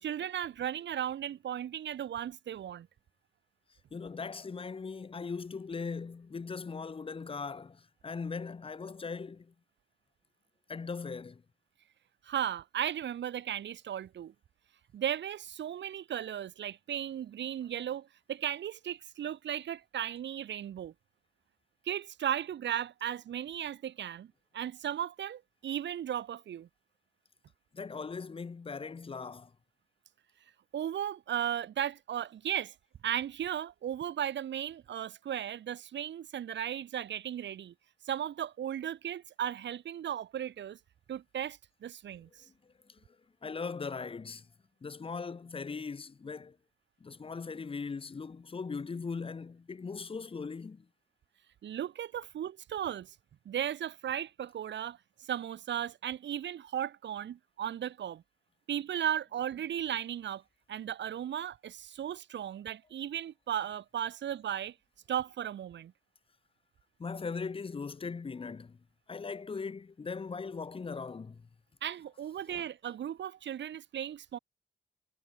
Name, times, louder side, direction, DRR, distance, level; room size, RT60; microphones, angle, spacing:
voice 1, 0.0-2.9 12.2-14.3 14.9-20.9 21.9-26.7 30.7-32.7 33.0-37.7 38.0-40.8 41.1-42.3 51.6-53.1 53.5-58.2 58.7-60.4 60.7-64.7 65.1-65.9 71.8-74.4, right 10 dB, 85° right, 2.4 m, -36 dB
voice 2, 3.9-9.5 10.7-11.4 27.7-29.5 42.9-43.0 43.4-44.5 44.8-46.6 47.0-50.9 67.0-68.8 69.1-71.4 72.5-72.7, left 5 dB, 30° left, 4.4 m, -39 dB
wide cardioid pair, 180°, 18 cm